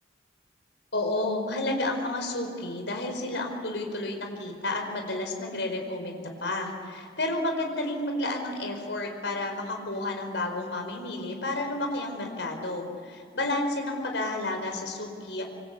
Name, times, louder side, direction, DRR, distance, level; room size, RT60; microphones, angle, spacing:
voice 1, 0.9-15.4, left 2 dB, 85° left, 3 dB, 5.1 m, -31 dB
26.0 x 25.5 x 8.5 m, 2.4 s
head